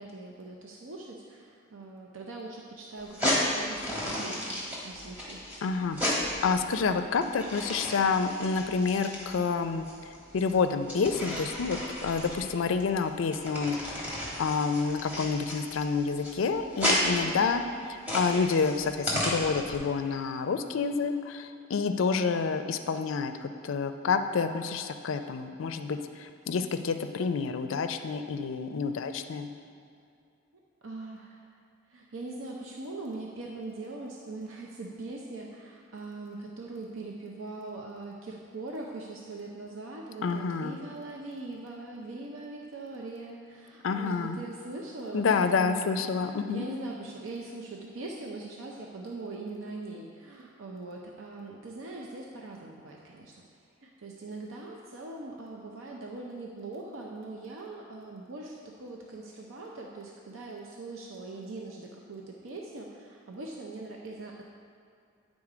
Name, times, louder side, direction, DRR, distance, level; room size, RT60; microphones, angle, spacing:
voice 1, 0.0-5.4 17.3-17.6 30.8-31.5 31.9-53.4 53.8-64.4, right 2 dB, 85° right, -1 dB, 0.6 m, -41 dB
sound 1, 3.0-19.8, left 1 dB, 10° right, 1.2 m, -33 dB
voice 2, 5.6-9.9 10.3-14.1 14.4-17.6 18.1-29.5 40.2-40.8 43.8-44.4 45.1-46.6, left 5 dB, 75° left, 8 dB, 0.4 m, -28 dB
8.9 x 3.8 x 4.9 m, 2.5 s
head